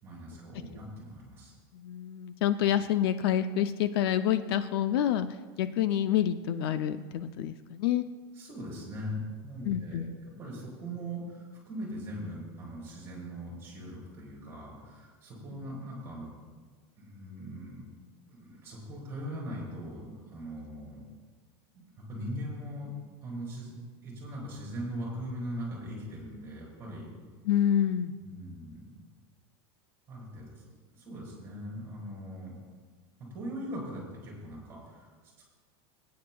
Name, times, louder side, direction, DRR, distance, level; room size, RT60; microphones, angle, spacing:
voice 1, 0.0-1.5 8.4-10.0 10.4-16.3 17.0-18.0 18.3-21.0 21.7-22.9 23.2-23.7 24.0-27.1 28.2-28.9 30.1-30.6 30.9-32.6 33.3-35.4, equal, 15° right, -3 dB, 3.9 m, -40 dB
voice 2, 1.7-8.0 9.6-10.1 15.5-15.6 27.4-28.1, left 10 dB, 60° left, 11 dB, 0.4 m, -28 dB
21.0 x 9.4 x 2.3 m, 1.4 s
supercardioid pair, 180°, 15 cm